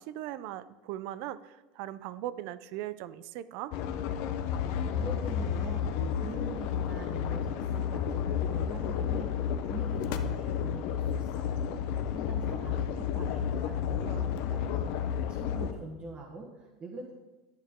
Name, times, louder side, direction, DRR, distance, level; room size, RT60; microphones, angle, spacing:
voice 1, 0.0-3.7, right 13 dB, 60° right, 15 dB, 0.5 m, -39 dB
sound 1, 3.7-15.7, left 8 dB, 65° left, 0.8 m, -31 dB
voice 2, 4.7-11.7 12.1-17.1, right 3 dB, 30° right, -1 dB, 1.3 m, -44 dB
12.0 x 6.7 x 3.7 m, 1.1 s
supercardioid pair, 115°, 4 cm